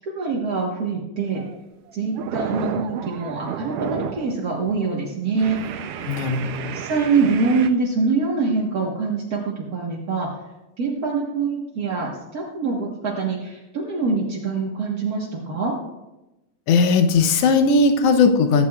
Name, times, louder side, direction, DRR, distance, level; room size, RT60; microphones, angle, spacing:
voice 1, 0.0-1.4 1.9-5.6 6.7-10.3 10.8-15.7, right 4 dB, 45° right, -3 dB, 1.3 m, -24 dB
sound 1, 1.2-1.6 1.9-4.3 4.7-4.9 5.4-7.7, right 8 dB, 85° right, 1.3 m, -31 dB
voice 2, 6.0-6.8 16.7-18.7, left 4 dB, 65° left, 7 dB, 1.7 m, -18 dB
23.0 x 9.7 x 2.4 m, 0.98 s
omnidirectional pair, 3.4 m